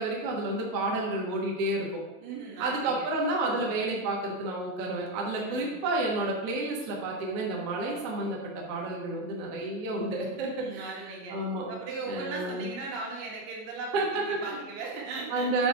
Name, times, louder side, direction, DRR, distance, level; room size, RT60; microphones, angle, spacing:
voice 1, 0.0-2.0 2.6-10.8 11.3-11.7 12.1-12.7 13.9-14.6 15.3-15.7, right 2 dB, 60° right, -3 dB, 1.5 m, -30 dB
voice 2, 2.2-3.1 3.5-3.7 5.3-5.8 10.3-11.4 11.7-15.7, right 3 dB, 85° right, -3 dB, 3.9 m, -39 dB
8.9 x 4.3 x 4.8 m, 1.0 s
omnidirectional pair, 5.2 m